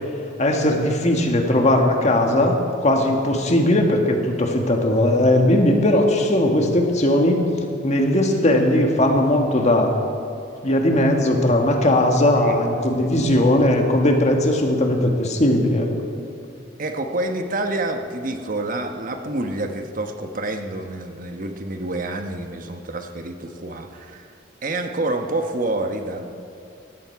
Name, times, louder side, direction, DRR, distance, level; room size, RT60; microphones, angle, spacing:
voice 1, 0.4-7.4 7.8-9.9 10.6-15.9, left 1 dB, 40° left, 2 dB, 1.8 m, -18 dB
voice 2, 13.0-13.4 16.8-24.3 24.6-26.3, right 2 dB, 50° right, 5 dB, 1.1 m, -28 dB
18.0 x 14.0 x 4.7 m, 2.6 s
head